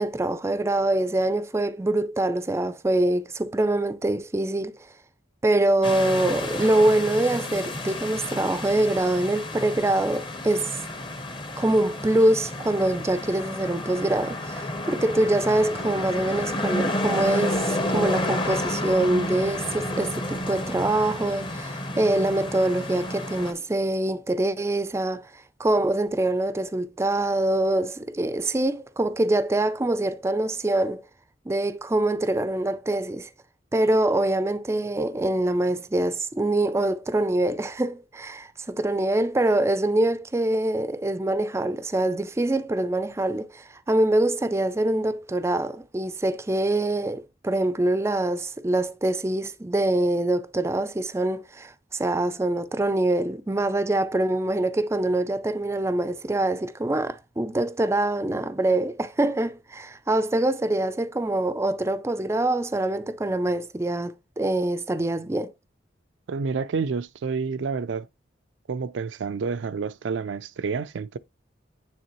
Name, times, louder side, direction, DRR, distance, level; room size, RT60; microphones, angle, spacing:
voice 1, 0.0-4.8 5.4-10.7 11.6-31.0 31.5-33.3 33.7-65.5, right 1 dB, 15° right, 0.4 m, -24 dB
sound 1, 5.8-23.5, left 1 dB, 25° left, 0.8 m, -31 dB
voice 2, 66.3-68.1 68.7-71.2, right 5 dB, 85° right, 0.4 m, -29 dB
9.3 x 3.6 x 3.0 m
head